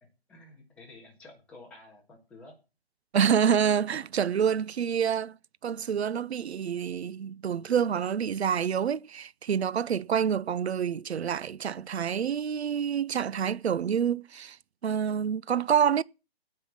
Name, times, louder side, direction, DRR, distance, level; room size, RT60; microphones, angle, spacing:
voice 1, 0.0-2.6, left 2 dB, 5° left, 1.5 m, -51 dB
voice 2, 3.1-5.4 5.6-14.6 14.8-16.0, right 8 dB, 90° right, 0.6 m, -27 dB
16.0 x 5.6 x 7.2 m
hypercardioid pair, 170°, 31 cm